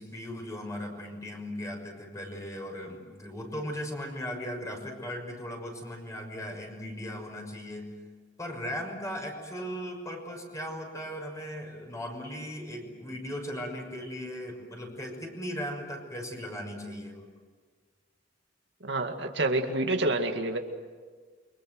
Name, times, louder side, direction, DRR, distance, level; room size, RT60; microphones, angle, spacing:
voice 1, 0.0-7.9 8.4-17.2, equal, 20° left, 2 dB, 6.2 m, -38 dB
voice 2, 18.8-20.6, right 2 dB, 70° right, 4 dB, 2.2 m, -28 dB
29.5 x 25.0 x 7.9 m, 1.5 s
head